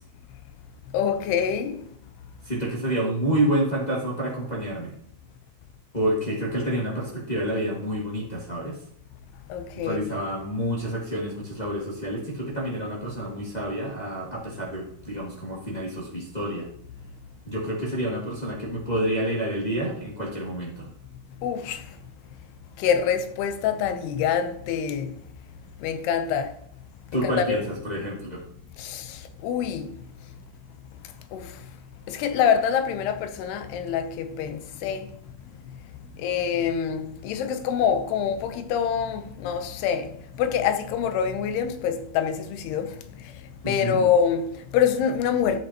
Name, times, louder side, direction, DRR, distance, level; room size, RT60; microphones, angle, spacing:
voice 1, 0.9-1.8 9.5-10.0 21.4-21.8 22.8-25.1 25.8-26.5 27.1-27.6 28.8-29.9 31.3-31.5 32.1-35.1 36.2-40.1 40.4-43.0 43.2-43.3 43.7-45.6, left 7 dB, 85° left, 2.9 m, -25 dB
voice 2, 2.4-4.9 5.9-8.7 9.7-16.6 17.5-20.9 27.1-28.4 43.6-44.1, right 1 dB, 25° left, 0.8 m, -28 dB
13.0 x 8.2 x 2.9 m
omnidirectional pair, 4.6 m